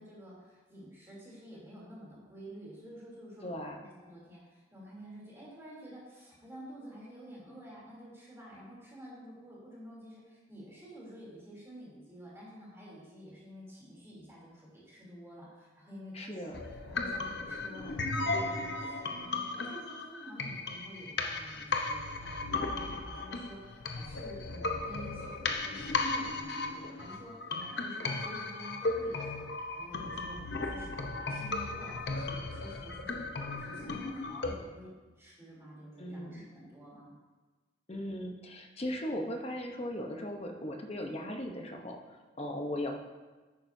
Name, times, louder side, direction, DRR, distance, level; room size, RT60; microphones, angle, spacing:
voice 1, 0.0-16.6 16.9-29.5 29.8-37.1, equal, 15° right, -6 dB, 3.1 m, -50 dB
voice 2, 3.4-3.8 16.1-16.6 36.0-36.5 37.9-43.0, left 1 dB, 35° left, 3 dB, 0.9 m, -38 dB
sound 1, 16.5-34.5, left 3 dB, 65° left, 0.8 m, -36 dB
10.5 x 8.6 x 2.7 m, 1.3 s
head